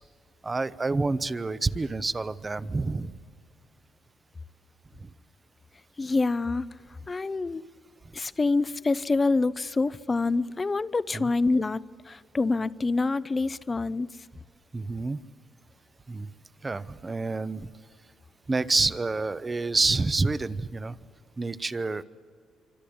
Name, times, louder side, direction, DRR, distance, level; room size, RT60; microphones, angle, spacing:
voice 1, 0.4-3.2 5.0-5.1 11.1-11.3 14.7-15.2 16.1-16.3 16.6-17.7 18.5-21.0 21.4-22.0, right 3 dB, 20° right, 15 dB, 0.8 m, -28 dB
voice 2, 6.0-6.7 7.1-7.7 8.1-11.8 12.1-14.2, left 3 dB, 25° left, 17 dB, 0.7 m, -26 dB
27.0 x 25.0 x 8.7 m, 2.1 s
cardioid pair, 120°, 0 cm